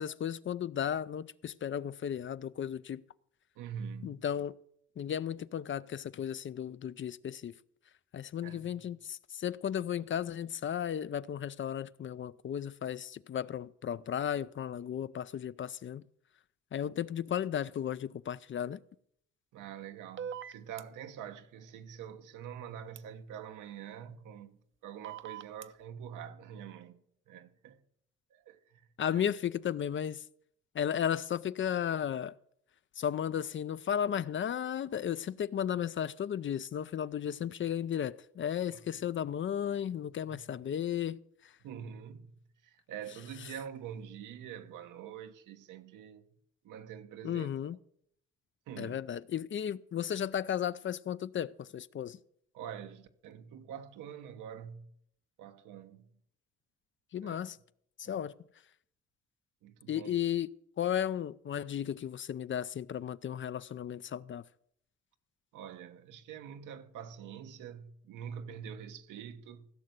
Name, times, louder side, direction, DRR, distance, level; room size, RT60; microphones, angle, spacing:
voice 1, 0.0-3.0 4.0-4.6 5.0-7.5 8.1-16.0 16.7-18.8 29.0-30.2 30.7-32.3 33.0-41.2 47.2-47.8 48.8-52.2 57.1-57.6 58.0-58.3 59.9-64.4, left 9 dB, 40° left, 0.5 m, -34 dB
voice 2, 3.6-4.2 8.4-8.8 19.5-27.0 27.3-27.8 28.3-29.3 38.7-38.8 40.3-40.4 41.6-46.3 46.6-47.5 48.7-49.0 52.5-54.9 55.4-56.0 57.2-57.5 58.0-58.3 59.6-60.2 65.5-69.7, right 8 dB, 85° right, 1.2 m, -45 dB
sound 1, 20.2-20.8 23.0-23.1 25.0-25.7, right 8 dB, 40° right, 0.7 m, -41 dB
16.0 x 6.5 x 8.0 m
cardioid pair, 90°, 30 cm